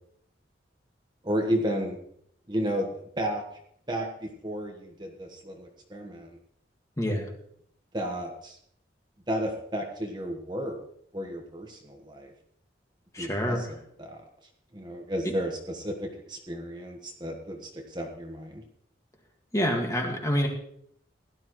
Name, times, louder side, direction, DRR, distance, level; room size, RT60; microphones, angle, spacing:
voice 1, 1.2-2.0 2.5-2.9 3.2-3.4 3.9-6.4 7.9-8.6 9.3-10.8 11.1-12.3 13.2-14.2 14.7-18.6, equal, 25° right, 2 dB, 1.4 m, -33 dB
voice 2, 7.0-7.3 13.1-13.6 15.2-15.3 19.5-20.5, equal, 15° left, 2 dB, 1.9 m, -27 dB
17.0 x 12.5 x 3.2 m, 0.68 s
head